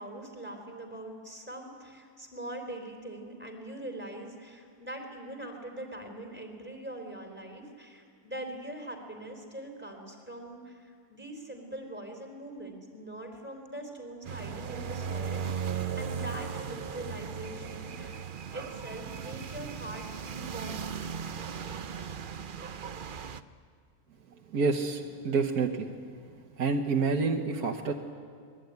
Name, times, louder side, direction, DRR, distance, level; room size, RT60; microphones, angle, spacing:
voice 1, 0.0-15.7 15.9-20.9, right 1 dB, 5° right, 2 dB, 3.9 m, -42 dB
sound 1, 14.2-23.4, right 7 dB, 50° right, 0.6 m, -37 dB
voice 2, 24.5-25.9 26.6-27.9, right 4 dB, 70° right, 1 dB, 1.6 m, -28 dB
25.0 x 21.0 x 9.5 m, 2.1 s
omnidirectional pair, 1.7 m